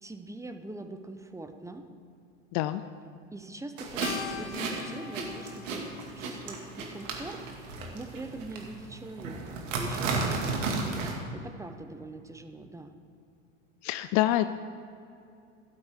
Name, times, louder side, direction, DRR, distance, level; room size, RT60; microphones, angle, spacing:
voice 1, 0.0-1.9 3.3-12.9, right 2 dB, 10° right, 8 dB, 0.8 m, -43 dB
sound 1, 3.8-11.1, right 3 dB, 70° right, 2.3 m, -34 dB
Keyboard (musical), 4.0-8.6, left 8 dB, 60° left, 1.2 m, -45 dB
voice 2, 13.8-14.5, left 15 dB, 45° left, 12 dB, 0.5 m, -26 dB
13.0 x 12.5 x 3.7 m, 2.5 s
hypercardioid pair, 90°, 39 cm